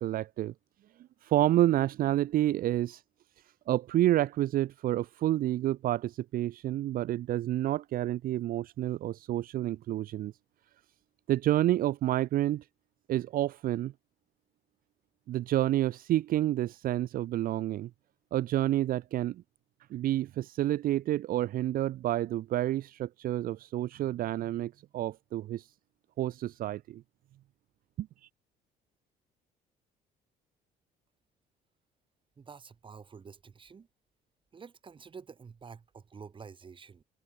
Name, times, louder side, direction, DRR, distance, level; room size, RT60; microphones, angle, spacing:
voice 1, 0.0-0.5 1.3-3.0 3.7-10.3 11.3-12.6 13.1-13.9 15.3-17.9 18.3-19.3 19.9-25.6 26.2-26.8, right 13 dB, 60° right, 0.6 m, -29 dB
voice 2, 32.4-33.9 34.5-37.0, right 5 dB, 30° right, 2.0 m, -49 dB
cardioid pair, 110°, 17 cm